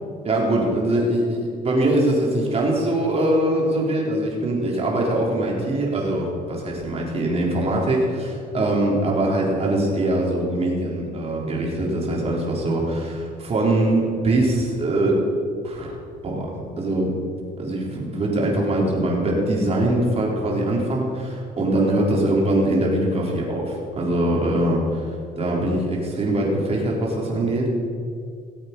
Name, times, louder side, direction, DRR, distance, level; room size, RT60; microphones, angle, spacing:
voice 1, 0.2-15.3 15.6-16.0 16.2-16.5 16.8-17.2 17.6-25.0 25.4-27.7, right 1 dB, 35° right, -2 dB, 3.8 m, -22 dB
18.5 x 8.0 x 5.4 m, 2.4 s
cardioid pair, 110°, 17 cm